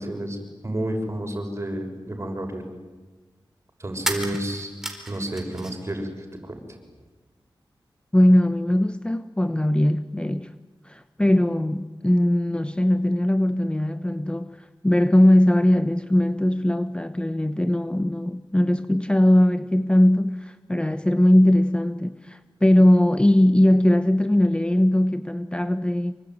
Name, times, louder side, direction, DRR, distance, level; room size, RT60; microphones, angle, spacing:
voice 1, 0.0-2.6 3.8-4.7 5.1-6.1 6.4-6.8, right 1 dB, 35° right, 6.3 m, -30 dB
sound 1, 4.0-5.9 6.2-7.1, right 1 dB, 5° right, 4.2 m, -33 dB
voice 2, 8.1-10.5 10.8-26.1, left 1 dB, 10° left, 0.8 m, -20 dB
26.0 x 24.0 x 9.5 m
wide cardioid pair, 85°, 8 cm